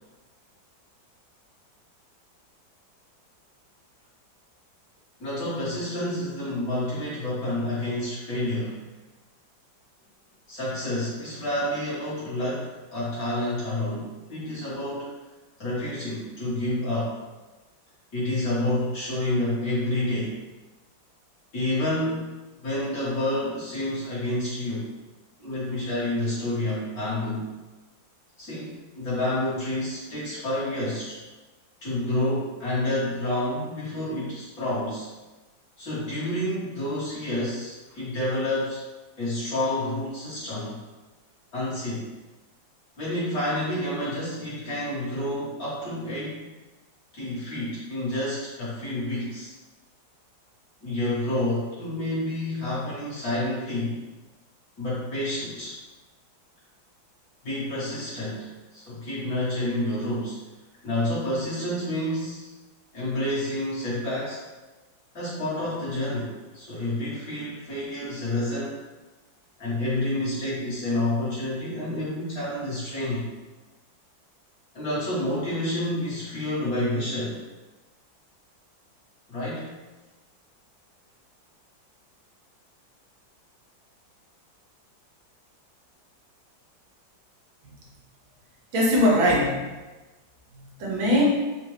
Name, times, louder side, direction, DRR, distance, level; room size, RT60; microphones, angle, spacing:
voice 1, 5.2-8.8 10.5-15.1 15.6-17.2 18.1-20.4 21.5-22.3 22.6-24.9 25.4-27.5 28.4-31.2 31.8-35.1 35.8-38.8 39.2-40.8 41.5-42.1 43.0-46.4 47.1-49.5 50.8-54.0 54.8-55.8 57.4-58.5 58.7-60.4 60.8-62.5 62.9-64.4 65.1-68.8 69.6-73.3 74.7-77.4 79.3-79.7, left 1 dB, 50° left, -11 dB, 2.0 m, -29 dB
voice 2, 88.7-89.7 90.5-91.2, equal, 80° right, -3 dB, 1.6 m, -21 dB
4.3 x 2.5 x 3.2 m, 1.2 s
omnidirectional pair, 2.1 m